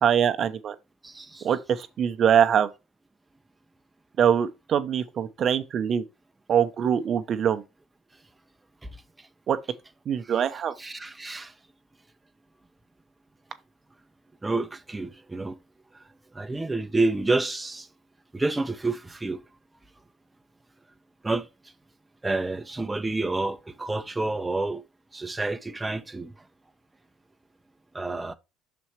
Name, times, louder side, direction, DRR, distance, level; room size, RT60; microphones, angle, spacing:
voice 1, 0.0-0.7 1.4-2.7 4.2-6.0 6.5-7.6 9.5-9.6 10.1-10.7, right 8 dB, 50° right, 0.7 m, -23 dB
voice 2, 1.0-1.4 10.8-11.5 14.4-15.5 16.3-17.9 18.3-19.4 21.2-21.5 22.2-24.8 25.1-26.3 27.9-28.3, right 2 dB, 15° right, 0.6 m, -29 dB
6.2 x 4.2 x 4.5 m
supercardioid pair, 80°, 0 cm